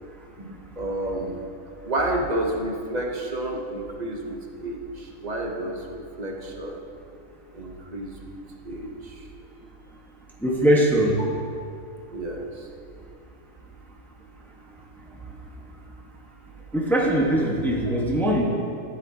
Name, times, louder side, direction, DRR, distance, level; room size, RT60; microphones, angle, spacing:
voice 1, 0.4-1.4 1.8-6.8 7.5-8.1 8.6-9.3 12.1-12.7, right 1 dB, 35° right, 1 dB, 0.9 m, -30 dB
voice 2, 10.4-11.2 16.7-18.4, right 1 dB, ahead, -3 dB, 1.1 m, -21 dB
13.5 x 11.0 x 2.8 m, 2.4 s
omnidirectional pair, 1.6 m